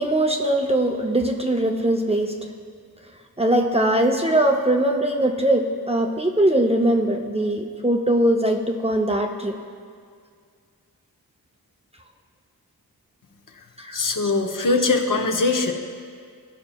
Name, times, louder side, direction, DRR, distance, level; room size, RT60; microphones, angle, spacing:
voice 1, 0.0-2.3 3.4-9.5 13.8-14.0, right 1 dB, 15° right, 1 dB, 0.5 m, -21 dB
voice 2, 13.9-15.7, left 3 dB, 55° left, 3 dB, 0.7 m, -21 dB
14.0 x 5.7 x 2.2 m, 2.1 s
wide cardioid pair, 70°, 38 cm